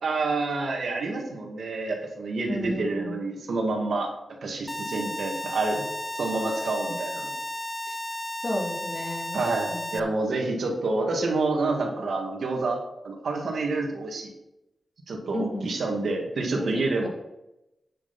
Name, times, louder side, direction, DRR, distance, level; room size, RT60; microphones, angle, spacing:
voice 1, 0.0-4.1 4.4-5.8 6.1-7.3 7.9-8.0 9.3-14.3 15.1-17.1, right 3 dB, 80° right, 1 dB, 2.3 m, -28 dB
voice 2, 2.5-3.1 8.4-9.4 9.7-10.0 15.3-15.7 16.5-17.1, left 1 dB, 45° left, -2 dB, 3.2 m, -33 dB
sound 1, 4.7-10.0, left 1 dB, 15° left, 0.7 m, -34 dB
9.3 x 7.5 x 4.4 m, 0.89 s
cardioid pair, 75°, 0 cm